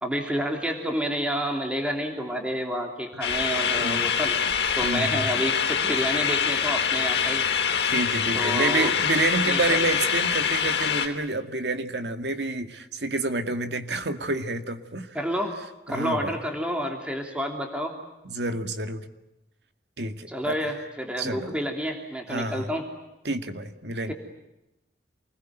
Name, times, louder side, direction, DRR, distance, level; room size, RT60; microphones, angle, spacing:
voice 1, 0.0-4.4 4.7-7.4 8.3-8.9 9.5-9.8 15.1-15.6 15.9-17.9 20.3-22.8, equal, 5° right, 2 dB, 3.0 m, -29 dB
sound 1, 3.2-11.1, left 7 dB, 70° left, 3.3 m, -25 dB
voice 2, 4.8-5.3 7.9-15.2 15.9-16.4 18.2-19.1 20.0-20.7 21.2-21.5 22.3-22.7 23.2-24.1, right 2 dB, 75° right, 7 dB, 2.2 m, -28 dB
28.0 x 21.0 x 9.2 m, 0.92 s
head